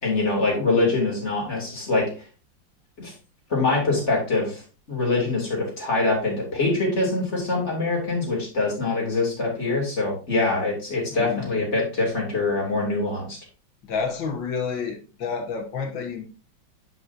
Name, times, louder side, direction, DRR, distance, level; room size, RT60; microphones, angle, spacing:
voice 1, 0.0-2.1 3.0-3.1 3.5-4.6 4.9-13.4, left 3 dB, 35° left, -2 dB, 3.0 m, -24 dB
voice 2, 11.1-11.5 13.8-16.2, left 5 dB, 70° left, 4 dB, 1.9 m, -29 dB
9.0 x 6.1 x 2.7 m, 0.35 s
omnidirectional pair, 2.2 m